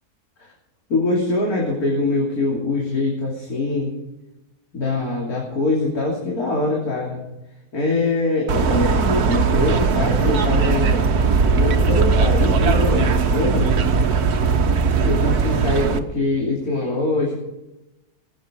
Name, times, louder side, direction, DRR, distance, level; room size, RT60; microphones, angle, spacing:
voice 1, 0.9-3.9 4.7-7.2 7.7-11.1 11.5-13.7 15.0-17.4, left 2 dB, 75° left, -3 dB, 3.5 m, -23 dB
sound 1, 8.5-16.0, right 5 dB, 85° right, 1.6 m, -19 dB
20.0 x 9.1 x 5.1 m, 0.95 s
omnidirectional pair, 1.6 m